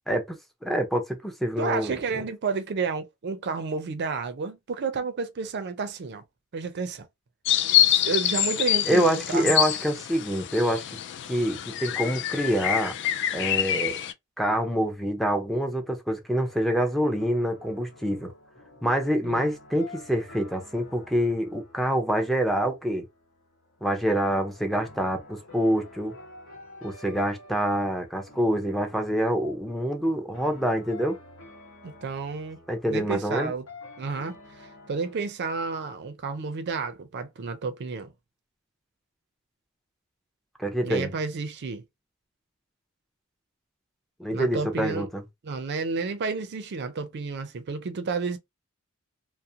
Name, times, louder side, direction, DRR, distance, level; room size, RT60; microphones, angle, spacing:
voice 1, 0.6-2.2 8.9-10.8 11.3-12.9 13.3-13.9 14.4-18.3 18.8-23.0 23.8-26.1 26.8-31.2 32.7-33.5 40.6-41.1 44.2-45.2, equal, ahead, 0.5 m, -26 dB
voice 2, 1.6-6.2 6.5-7.1 7.9-9.5 19.2-19.4 31.8-33.6 34.0-38.1 40.8-41.8 44.3-45.1 45.4-48.4, right 4 dB, 55° right, 0.4 m, -31 dB
sound 1, 7.5-14.1, left 11 dB, 55° left, 0.3 m, -26 dB
sound 2, 16.3-35.2, left 2 dB, 75° left, 1.1 m, -50 dB
2.4 x 2.1 x 2.7 m
head